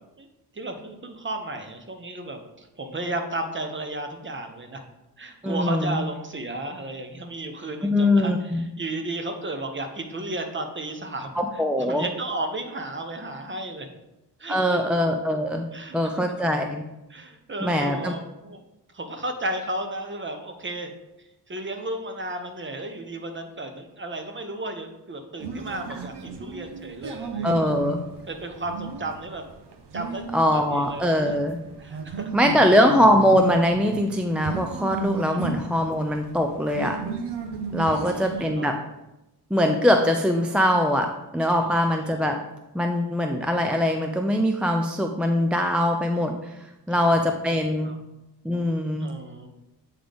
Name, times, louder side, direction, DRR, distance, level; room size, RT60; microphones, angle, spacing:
voice 1, 0.5-4.8 5.2-13.9 14.4-14.8 15.7-16.2 17.1-18.6 18.9-20.9 21.5-27.7 28.3-29.4 29.9-31.4 31.8-32.5 35.3-35.4 37.8-38.7 41.5-41.8 42.1-42.2 46.9-47.0 47.8-48.0 49.0-49.5, right 1 dB, 30° right, 5 dB, 0.9 m, -34 dB
voice 2, 5.4-6.0 7.8-8.6 11.4-12.0 14.5-15.7 15.9-16.8 17.6-18.1 27.4-28.0 30.3-31.6 32.3-37.0 37.7-38.8 39.5-42.4 42.7-46.5 46.9-47.9 48.4-49.1, left 1 dB, 5° right, 4 dB, 0.4 m, -22 dB
sound 1, 25.4-38.5, right 5 dB, 90° right, 0.8 m, -35 dB
8.5 x 3.8 x 3.5 m, 0.93 s
wide cardioid pair, 100°, 40 cm